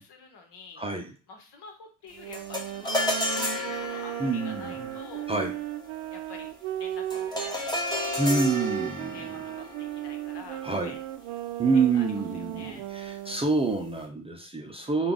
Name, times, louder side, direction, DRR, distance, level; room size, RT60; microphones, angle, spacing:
voice 1, 0.0-0.9 1.3-5.3 6.1-6.5 6.8-8.3 9.1-11.0 11.7-12.9 14.8-15.1, left 4 dB, 55° left, 3 dB, 1.2 m, -48 dB
voice 2, 0.8-1.1 4.2-4.9 5.3-5.5 8.2-9.2 10.6-10.9 11.6-15.1, right 4 dB, 10° right, 1 dB, 0.7 m, -27 dB
sound 1, 2.1-7.6 8.2-13.4, right 13 dB, 65° right, 0.5 m, -36 dB
sound 2, 2.3-11.8, left 1 dB, 10° left, 1.2 m, -34 dB
3.4 x 2.4 x 3.8 m, 0.37 s
hypercardioid pair, 60°, 50 cm